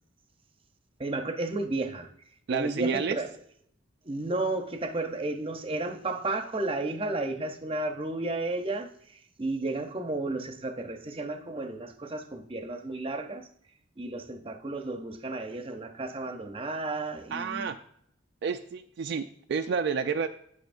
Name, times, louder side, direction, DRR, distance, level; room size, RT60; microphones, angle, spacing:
voice 1, 1.0-2.1 2.5-3.3 4.0-13.5 14.0-17.7, right 2 dB, 25° right, 0.7 m, -33 dB
voice 2, 2.5-3.2 17.3-17.8 18.4-20.3, right 5 dB, 55° right, 0.3 m, -29 dB
8.9 x 8.1 x 2.6 m
head